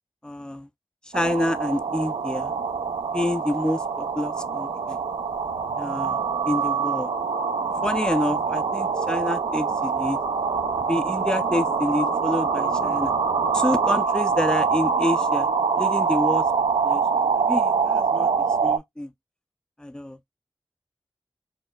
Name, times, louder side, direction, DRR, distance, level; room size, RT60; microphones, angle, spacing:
voice 1, 0.2-0.7 1.1-2.5 3.1-5.0 5.8-7.1 7.8-10.2 10.8-13.1 13.5-15.5 15.8-16.4 16.8-17.0 17.4-18.3 18.6-19.1 19.8-20.2, left 1 dB, 10° left, 0.4 m, -28 dB
sound 1, 1.1-18.8, right 5 dB, 75° right, 0.4 m, -24 dB
4.3 x 2.1 x 2.2 m
cardioid pair, 40°, 10 cm